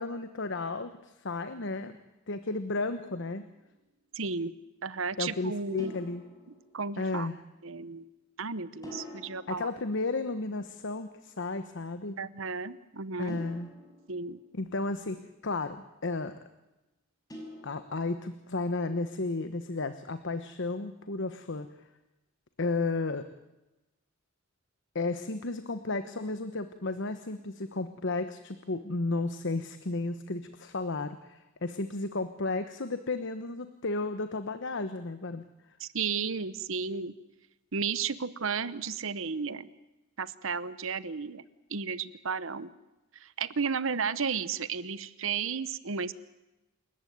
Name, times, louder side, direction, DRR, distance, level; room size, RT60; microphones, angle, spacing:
voice 1, 0.0-2.0 2.3-3.4 5.2-6.2 7.0-7.4 9.5-12.2 13.2-13.7 14.5-16.4 17.6-21.7 22.6-23.2 24.9-35.4, left 3 dB, 60° left, 10 dB, 1.1 m, -33 dB
sound 1, 3.6-3.7 5.8-7.3 8.8-10.8 13.3-15.0 17.3-18.5, left 1 dB, 20° left, 5.8 m, -48 dB
voice 2, 4.1-4.5 4.8-5.9 6.7-7.3 7.6-8.1 8.4-9.7 12.2-13.4 14.1-14.4 35.8-37.1 37.7-39.7 40.2-41.4 41.7-42.7 43.1-46.1, right 5 dB, 70° right, 16 dB, 1.0 m, -33 dB
27.5 x 14.5 x 9.4 m, 1.0 s
head